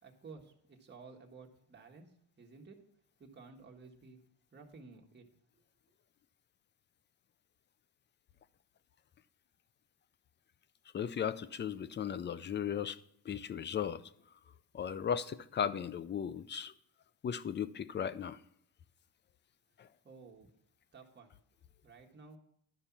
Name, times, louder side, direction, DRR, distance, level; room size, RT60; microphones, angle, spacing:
voice 1, 0.0-2.8 3.2-4.2 4.5-5.2 20.0-20.5 20.9-21.3 21.8-22.4, right 4 dB, 25° right, 1.5 m, -54 dB
voice 2, 10.9-13.0 13.2-14.0 14.7-16.7 17.2-18.4 19.8-19.9, left 8 dB, 30° left, 0.4 m, -36 dB
11.5 x 5.5 x 7.2 m
cardioid pair, 135°, 40 cm